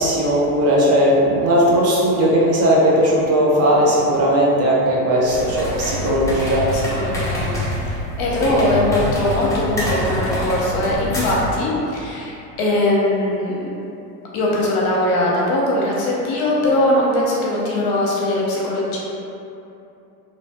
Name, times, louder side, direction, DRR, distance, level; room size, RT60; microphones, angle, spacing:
voice 1, 0.0-6.9 8.4-8.6, equal, 35° right, -4 dB, 0.4 m, -17 dB
sound 1, 5.2-11.6, equal, 5° left, 0.6 m, -25 dB
voice 2, 6.7-7.5 7.9-13.6 14.3-19.0, left 1 dB, 55° left, -5 dB, 0.8 m, -20 dB
2.6 x 2.5 x 2.2 m, 2.8 s
hypercardioid pair, 90°, 45 cm